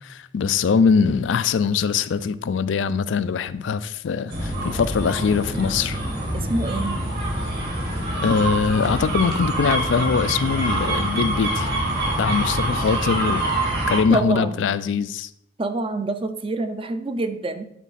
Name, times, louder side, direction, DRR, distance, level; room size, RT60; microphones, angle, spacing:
voice 1, 0.0-6.0 8.2-11.7 12.2-13.4 13.9-15.3, left 5 dB, 80° left, 0.4 m, -22 dB
sound 1, 4.3-14.0, right 1 dB, 55° right, 2.2 m, -25 dB
voice 2, 6.3-7.0 14.1-14.7 15.6-17.6, right 2 dB, 30° right, 0.5 m, -26 dB
9.3 x 4.0 x 4.2 m
head